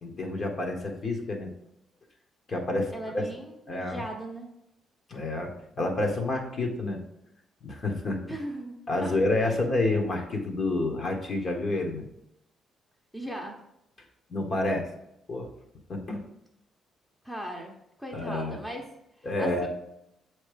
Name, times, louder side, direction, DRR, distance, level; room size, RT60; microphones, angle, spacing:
voice 1, 0.0-1.5 2.5-3.2 3.7-4.0 5.1-7.0 7.6-8.2 8.9-12.1 14.3-14.9 15.3-15.5 15.9-16.2 18.1-18.6 19.2-19.7, left 2 dB, 45° left, 2 dB, 1.3 m, -29 dB
voice 2, 2.9-4.5 8.3-9.1 9.4-9.5 13.1-13.6 17.2-18.9 19.2-19.7, right 1 dB, 5° left, 1 dB, 1.0 m, -38 dB
7.2 x 3.2 x 5.1 m, 0.82 s
cardioid pair, 90°, 0 cm